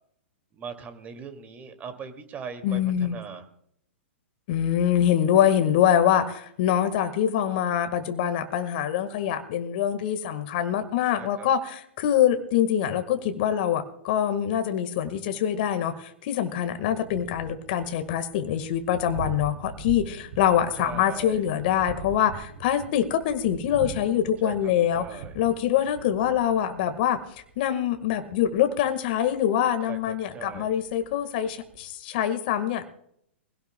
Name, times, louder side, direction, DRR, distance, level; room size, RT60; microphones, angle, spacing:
voice 1, 0.5-3.4 11.2-11.5 20.8-21.5 24.4-25.4 29.8-30.7, right 6 dB, 25° right, 7 dB, 2.3 m, -40 dB
voice 2, 2.6-3.1 4.5-27.2 27.6-32.8, left 10 dB, 50° left, 8 dB, 1.6 m, -24 dB
Thunder, 16.6-31.9, right 5 dB, 60° right, 2.8 m, -43 dB
23.5 x 17.0 x 2.2 m, 0.70 s
hypercardioid pair, 110°, 7 cm